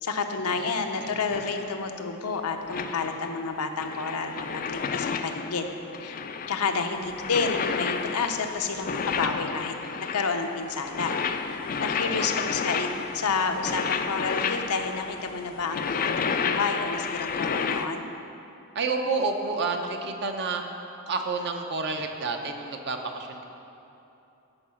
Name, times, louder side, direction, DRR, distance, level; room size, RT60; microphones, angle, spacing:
voice 1, 0.0-5.7 6.0-6.2 6.5-9.8 10.1-11.2 11.5-12.9 13.1-18.1, left 4 dB, 85° left, 5 dB, 0.8 m, -30 dB
sound 1, 1.3-1.9 2.6-17.9, left 6 dB, 40° left, 0.4 m, -31 dB
voice 2, 11.9-12.3 18.7-20.6 21.1-23.4, right 4 dB, 50° right, 4 dB, 0.8 m, -29 dB
11.0 x 4.8 x 7.1 m, 2.9 s
head